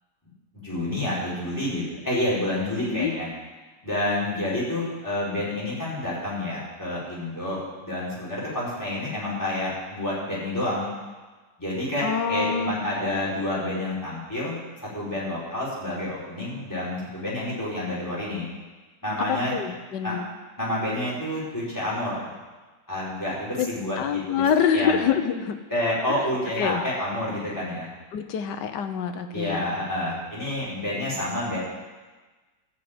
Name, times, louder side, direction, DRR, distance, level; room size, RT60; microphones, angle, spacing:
voice 1, 0.5-3.3 3.8-10.9 11.6-14.6 14.9-18.5 19.0-19.5 20.0-20.2 20.6-22.3 22.9-24.4 24.7-24.9 25.7-27.9 29.3-31.6, left 1 dB, 10° left, -7 dB, 4.6 m, -29 dB
voice 2, 2.7-3.1 12.0-12.8 19.3-20.3 23.6-23.7 24.0-25.6 26.6-26.8 28.1-29.7, left 7 dB, 75° left, 8 dB, 1.5 m, -26 dB
12.5 x 6.4 x 8.8 m, 1.3 s
omnidirectional pair, 1.9 m